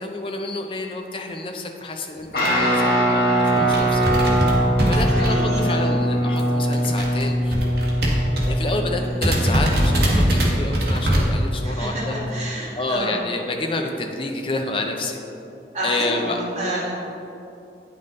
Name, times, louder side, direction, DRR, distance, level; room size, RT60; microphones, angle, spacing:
voice 1, 0.0-4.4 4.9-7.5 8.5-12.1 12.7-15.2 15.8-16.4, left 2 dB, 30° left, 3 dB, 0.6 m, -29 dB
Guitar, 2.3-12.2, right 1 dB, 55° left, 1.4 m, -22 dB
sound 1, 2.4-2.6 3.1-3.2 3.4-5.8 6.0-8.7 8.9-9.0 9.2-11.2, equal, 60° right, 1.4 m, -21 dB
voice 2, 4.9-5.8 9.0-9.2 11.6-13.1 15.7-16.9, equal, 35° right, -9 dB, 1.9 m, -29 dB
9.1 x 5.5 x 3.9 m, 2.7 s
head